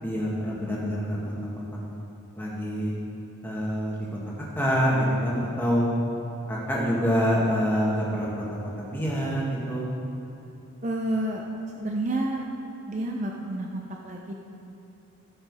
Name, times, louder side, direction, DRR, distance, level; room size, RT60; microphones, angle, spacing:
voice 1, 0.0-1.7 2.3-2.9 3.4-4.2 4.5-5.9 6.5-9.9, equal, 10° left, -5 dB, 1.8 m, -26 dB
voice 2, 10.8-11.4 11.8-12.5 12.9-14.3, right 1 dB, 35° right, 0 dB, 0.6 m, -29 dB
15.0 x 6.5 x 4.8 m, 2.9 s
head